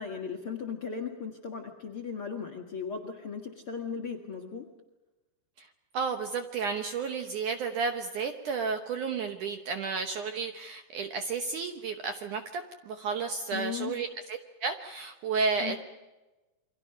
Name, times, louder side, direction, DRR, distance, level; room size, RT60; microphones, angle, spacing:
voice 1, 0.0-4.7 13.5-14.0 15.6-15.8, left 6 dB, 50° left, 2 dB, 1.6 m, -37 dB
voice 2, 5.9-15.8, right 5 dB, 70° right, 7 dB, 2.0 m, -32 dB
28.5 x 24.0 x 5.7 m, 1.1 s
omnidirectional pair, 4.8 m